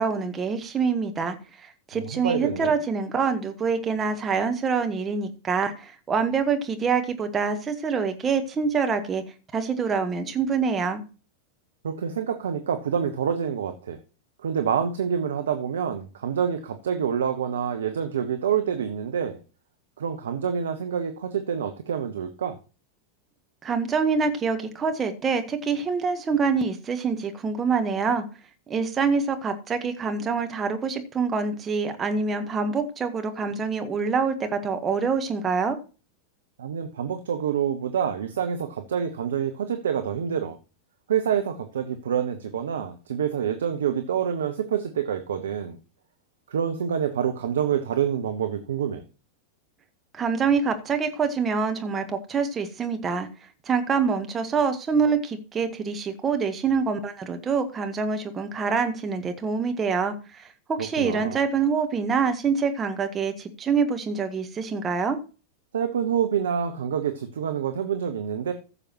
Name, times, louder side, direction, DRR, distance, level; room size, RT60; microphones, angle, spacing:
voice 1, 0.0-1.4 1.9-9.2 9.5-11.0 23.6-28.2 28.7-35.8 50.1-53.3 53.7-65.2, right 5 dB, 20° right, 6 dB, 1.3 m, -25 dB
voice 2, 1.9-2.7 11.8-14.0 14.4-19.4 20.0-22.6 36.6-40.6 41.1-45.8 46.5-49.0 60.8-61.4 65.7-68.5, right 8 dB, 65° right, 7 dB, 0.9 m, -27 dB
15.0 x 6.9 x 3.0 m, 0.34 s
figure-of-eight pair, 90°, 0 cm